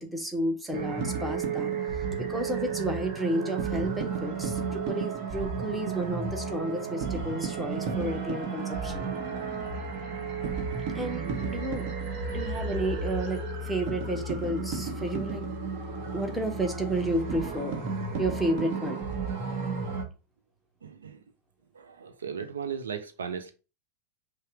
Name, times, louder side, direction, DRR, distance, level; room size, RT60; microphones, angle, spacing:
voice 1, 0.0-9.1 10.9-11.8 12.3-15.4 16.1-17.8 18.2-19.0, right 1 dB, 5° right, 0.8 m, -32 dB
sound 1, 0.7-20.0, right 4 dB, 45° right, 1.0 m, -33 dB
voice 2, 20.8-21.2 21.8-23.5, right 7 dB, 70° right, 0.5 m, -36 dB
5.6 x 2.0 x 4.6 m
figure-of-eight pair, 90°, 0 cm